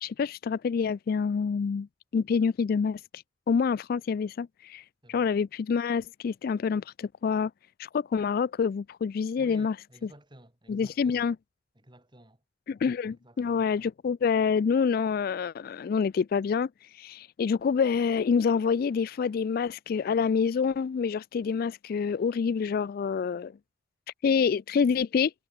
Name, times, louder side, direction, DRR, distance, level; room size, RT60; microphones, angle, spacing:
voice 1, 0.0-1.9 2.1-7.5 7.8-9.7 10.7-11.4 12.7-23.6 24.2-25.3, left 6 dB, 50° left, 0.3 m, -27 dB
voice 2, 9.4-11.2 11.7-12.4 13.1-13.6, right 1 dB, 25° right, 4.0 m, -54 dB
head